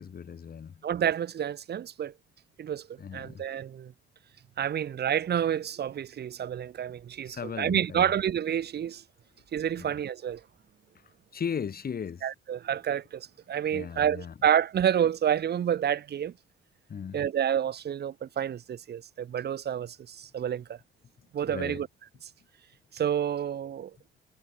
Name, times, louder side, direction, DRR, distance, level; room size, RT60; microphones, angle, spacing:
voice 1, 0.0-0.8 3.0-3.4 7.2-8.1 9.8-9.9 11.0-12.3 13.7-14.3 16.9-17.2 21.5-21.8, left 7 dB, 50° left, 7.6 m, -37 dB
voice 2, 0.8-2.1 2.6-2.9 3.1-3.9 4.6-9.0 9.5-10.4 12.2-16.3 17.1-20.8 21.3-21.9 22.9-23.9, right 9 dB, 55° right, 1.5 m, -29 dB
cardioid pair, 90°, 20 cm